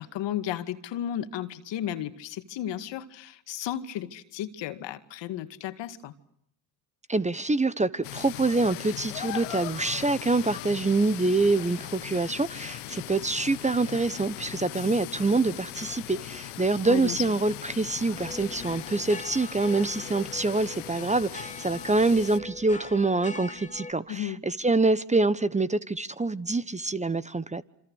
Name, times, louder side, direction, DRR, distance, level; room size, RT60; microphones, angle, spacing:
voice 1, 0.0-6.1 16.8-17.2 24.1-24.4, left 11 dB, 70° left, 2.2 m, -34 dB
voice 2, 7.1-27.6, right 3 dB, 15° right, 1.2 m, -26 dB
sound 1, 8.0-22.4, left 18 dB, 90° left, 1.3 m, -39 dB
sound 2, 18.1-23.9, left 3 dB, 15° left, 2.9 m, -42 dB
27.5 x 26.0 x 6.5 m
supercardioid pair, 70°, 46 cm